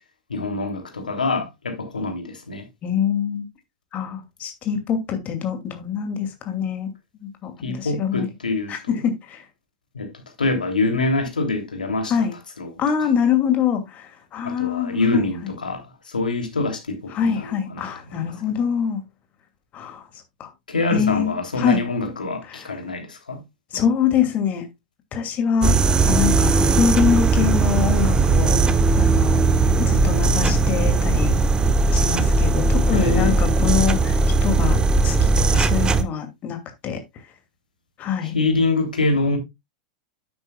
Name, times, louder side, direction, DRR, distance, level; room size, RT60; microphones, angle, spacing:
voice 1, 0.3-2.7 7.6-9.0 9.9-10.1 10.4-12.1 12.6-12.7 13.0-13.1 14.4-17.8 18.1-18.3 20.7-23.4 32.9-33.4 38.2-39.4, left 3 dB, 90° left, 3.0 m, -25 dB
voice 2, 2.8-3.5 3.9-6.9 7.2-8.3 8.7-9.4 12.1-12.3 12.8-15.5 17.1-19.0 19.7-20.0 20.4-20.5 20.9-21.8 22.5-22.7 23.7-24.7 25.1-25.7 26.0-28.6 29.0-29.4 29.8-31.3 31.9-36.6 36.8-37.0 38.0-38.3, left 7 dB, 35° left, 2.6 m, -24 dB
sound 1, 25.6-36.0, right 3 dB, 20° right, 1.1 m, -18 dB
10.0 x 8.7 x 2.3 m
hypercardioid pair, 100°, 4 cm